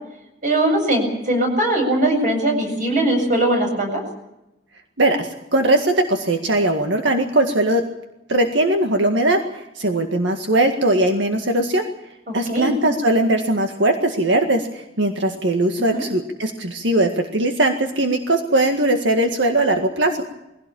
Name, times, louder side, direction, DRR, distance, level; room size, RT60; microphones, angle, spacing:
voice 1, 0.4-4.0 12.3-12.8 15.8-16.1, right 1 dB, 45° right, 3 dB, 7.7 m, -20 dB
voice 2, 5.0-7.8 8.3-9.4 9.8-11.8 12.3-20.2, right 1 dB, 90° right, 4 dB, 1.9 m, -19 dB
22.5 x 17.0 x 8.6 m, 0.92 s
head